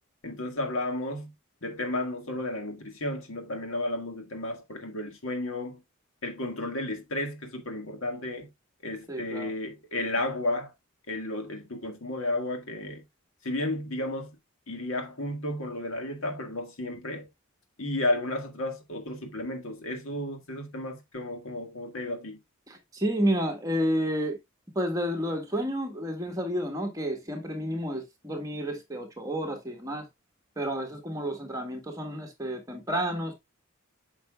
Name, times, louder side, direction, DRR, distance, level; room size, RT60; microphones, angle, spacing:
voice 1, 0.2-1.3 1.6-5.8 6.2-8.5 8.8-10.7 11.1-13.0 13.4-14.4 14.7-17.3 17.8-22.4, left 1 dB, 70° left, 1.9 m, -33 dB
voice 2, 9.1-9.5 22.7-24.4 24.7-30.0 30.5-33.3, equal, 15° right, 1.7 m, -30 dB
8.9 x 5.9 x 2.4 m
head